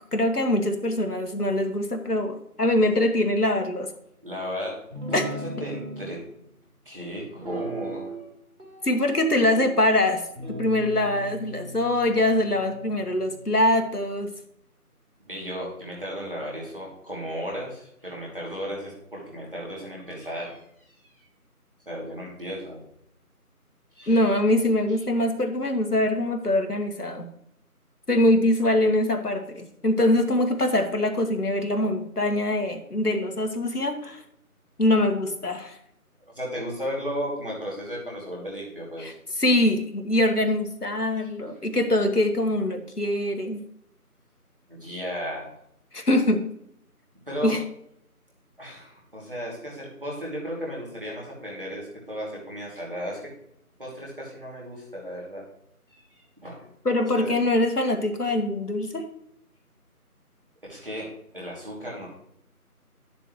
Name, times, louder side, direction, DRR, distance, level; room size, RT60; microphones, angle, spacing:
voice 1, 0.1-3.9 5.1-5.3 8.8-10.2 10.6-14.3 24.1-27.3 28.1-34.2 34.8-35.8 39.0-39.1 39.4-43.6 45.9-46.5 47.4-47.6 56.8-59.0, left 1 dB, 80° left, 5 dB, 1.6 m, -23 dB
voice 2, 4.2-4.8 5.1-6.2 6.8-8.1 15.3-20.6 21.9-22.8 23.9-24.2 36.2-39.0 41.2-41.3 44.7-45.5 47.3-47.5 48.6-53.2 53.8-55.4 55.9-56.7 57.1-57.4 60.7-62.1, equal, 35° right, -3 dB, 2.8 m, -35 dB
Guitar, 4.9-6.1 7.4-8.3 8.6-9.8 10.4-13.8, right 1 dB, 70° right, 3.7 m, -38 dB
11.5 x 7.0 x 3.2 m, 0.73 s
figure-of-eight pair, 175°, 46 cm